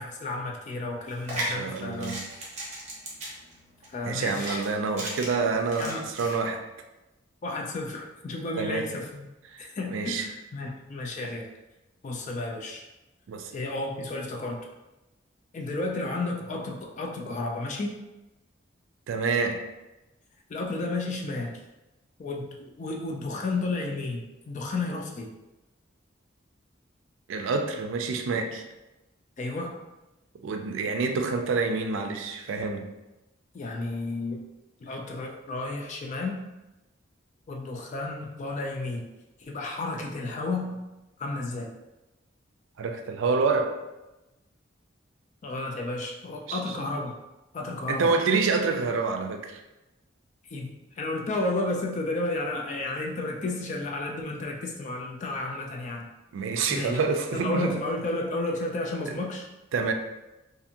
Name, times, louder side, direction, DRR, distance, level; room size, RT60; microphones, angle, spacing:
voice 1, 0.0-2.2 3.9-4.6 5.8-6.1 7.4-9.3 9.8-11.5 12.0-12.8 13.5-14.6 15.5-18.0 20.5-21.6 22.2-25.3 29.4-29.8 33.5-34.4 34.8-36.4 37.5-39.0 39.4-40.8 41.2-41.7 45.4-47.2 47.5-48.1 50.5-56.1 56.7-57.0 57.3-59.5, left 2 dB, 40° left, 1 dB, 0.3 m, -32 dB
sound 1, 1.1-6.3, right 1 dB, 35° right, 0.7 m, -36 dB
voice 2, 1.3-2.3 4.0-6.6 8.6-8.9 9.5-10.3 13.3-13.5 19.1-19.6 27.3-28.6 30.4-32.9 42.8-43.8 46.5-46.8 47.9-49.6 56.3-57.8 59.7-59.9, right 4 dB, 80° right, 5 dB, 0.4 m, -27 dB
2.7 x 2.5 x 2.5 m, 1.0 s
head